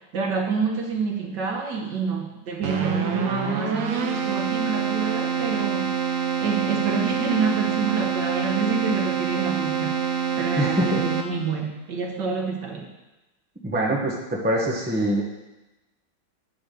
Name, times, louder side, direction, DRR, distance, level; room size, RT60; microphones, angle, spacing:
voice 1, 0.0-6.1 6.4-10.0 10.4-12.9, right 5 dB, 60° right, 1 dB, 1.5 m, -27 dB
Keyboard (musical), 2.6-11.6, right 7 dB, 85° right, 0.7 m, -26 dB
voice 2, 10.6-11.0 13.6-15.2, right 1 dB, 15° right, -2 dB, 0.4 m, -24 dB
8.0 x 3.9 x 6.8 m, 1.0 s
omnidirectional pair, 2.4 m